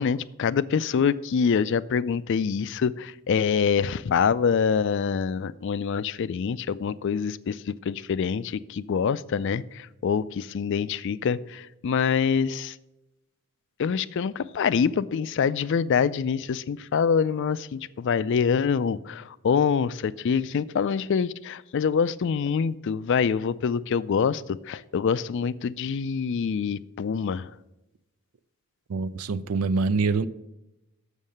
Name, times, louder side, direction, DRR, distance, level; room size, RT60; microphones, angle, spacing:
voice 1, 0.0-12.8 13.8-27.5, left 6 dB, 55° left, 0.3 m, -25 dB
voice 2, 28.9-30.3, right 4 dB, 75° right, 0.4 m, -25 dB
7.3 x 6.5 x 6.5 m
head